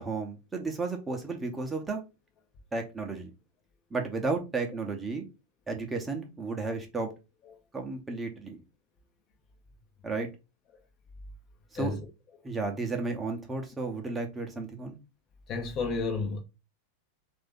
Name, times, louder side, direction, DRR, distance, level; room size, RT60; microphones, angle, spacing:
voice 1, 0.0-2.0 2.7-3.3 3.9-5.2 5.7-7.1 7.7-8.6 10.0-10.3 11.7-11.9 12.4-14.9, right 3 dB, 15° right, 0.9 m, -33 dB
voice 2, 15.5-16.4, left 4 dB, 35° left, 0.8 m, -31 dB
3.3 x 2.6 x 3.7 m
figure-of-eight pair, 90°, 0 cm